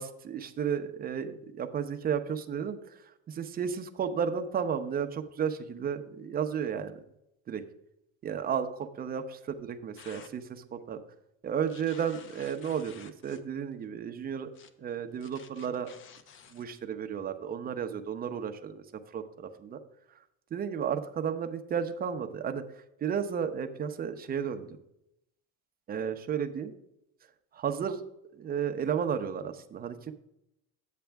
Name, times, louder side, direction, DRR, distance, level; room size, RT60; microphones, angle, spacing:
voice 1, 0.0-7.0 7.5-7.6 8.2-11.0 11.4-14.5 14.8-15.9 16.5-18.8 19.1-19.8 20.5-24.8 25.9-26.7 27.5-28.0 28.3-30.1, right 7 dB, 25° right, 8 dB, 0.8 m, -33 dB
sound 1, 10.0-10.3 11.7-13.4 14.5-14.7 15.2-16.6, left 7 dB, 35° left, 0.8 m, -52 dB
10.0 x 8.4 x 3.5 m, 0.81 s
cardioid pair, 135°, 34 cm